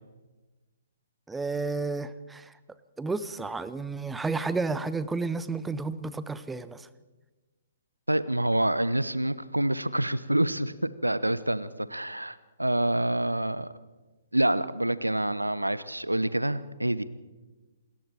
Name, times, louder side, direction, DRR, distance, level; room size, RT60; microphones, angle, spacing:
voice 1, 1.3-2.5 3.0-6.9, right 3 dB, 5° right, 15 dB, 0.7 m, -31 dB
voice 2, 8.1-13.7 14.3-17.0, right 1 dB, 85° right, 16 dB, 0.9 m, -27 dB
28.0 x 20.0 x 4.6 m, 1.2 s
figure-of-eight pair, 125°, 0 cm